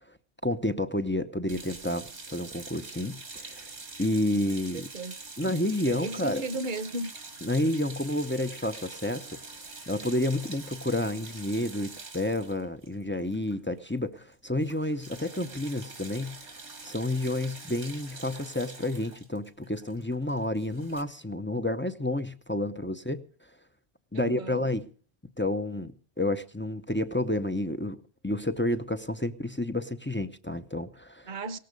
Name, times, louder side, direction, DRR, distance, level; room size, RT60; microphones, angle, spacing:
voice 1, 0.4-3.7 4.0-4.9 5.4-6.4 7.4-9.3 9.9-16.4 16.8-23.2 24.1-24.9 25.4-28.0 28.2-31.4, left 1 dB, 15° left, 0.6 m, -30 dB
sound 1, 1.5-13.9 14.1-14.3 14.6-21.0, right 3 dB, 85° right, 2.3 m, -45 dB
voice 2, 4.7-5.1 5.9-7.1 24.1-24.7 31.3-31.6, right 2 dB, 50° right, 1.1 m, -35 dB
18.0 x 14.5 x 5.2 m
omnidirectional pair, 1.1 m